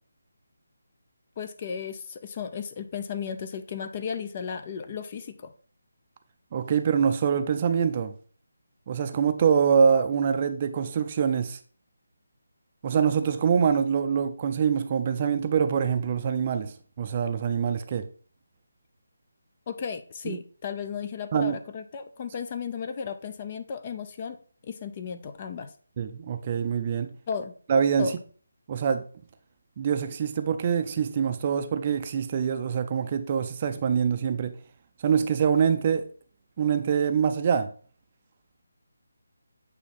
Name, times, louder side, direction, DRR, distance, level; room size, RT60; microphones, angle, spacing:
voice 1, 1.4-5.5 19.7-24.4 24.6-25.7 27.3-27.6 28.0-28.1, left 6 dB, 30° left, 0.5 m, -34 dB
voice 2, 6.5-8.1 8.9-11.6 12.8-18.1 20.2-20.4 21.3-21.6 26.0-27.1 27.7-28.1 28.7-29.1 29.8-34.6 35.0-36.0 36.6-37.7, right 7 dB, 30° right, 0.5 m, -25 dB
8.1 x 2.9 x 4.1 m
figure-of-eight pair, 165°, 0 cm